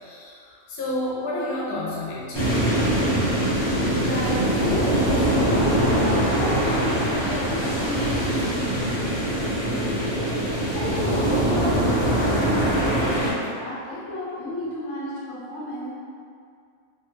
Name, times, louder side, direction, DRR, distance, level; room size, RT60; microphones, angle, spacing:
voice 1, 0.0-2.5, left 1 dB, 85° left, -6 dB, 1.2 m, -30 dB
sound 1, 2.3-13.3, right 1 dB, 20° left, 0.8 m, -23 dB
voice 2, 4.0-15.9, left 1 dB, 50° left, -9 dB, 1.1 m, -31 dB
3.4 x 2.2 x 3.0 m, 2.3 s
omnidirectional pair, 1.6 m